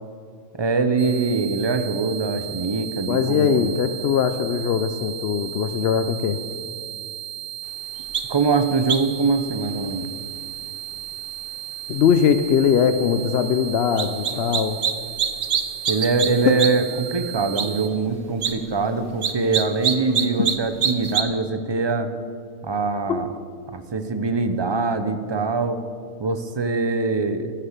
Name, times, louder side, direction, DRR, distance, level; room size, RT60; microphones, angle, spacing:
voice 1, 0.5-3.7 8.3-10.1 15.9-22.1 22.6-23.3 23.7-25.8 26.2-27.5, right 4 dB, 30° right, 9 dB, 0.5 m, -23 dB
sound 1, 1.0-17.9, right 11 dB, 70° right, 1.3 m, -35 dB
voice 2, 3.0-6.4 11.9-14.8 16.4-16.6 23.1-23.3, left 7 dB, 65° left, 10 dB, 0.7 m, -21 dB
sound 2, 8.1-8.2 8.9-9.2 14.0-14.9 15.2-16.3 16.6-16.7 17.1-17.2 17.6-17.7 18.3-18.5 19.2-20.6 20.8-21.2, right 7 dB, 50° right, 0.8 m, -23 dB
14.5 x 6.8 x 7.2 m, 2.3 s
omnidirectional pair, 1.3 m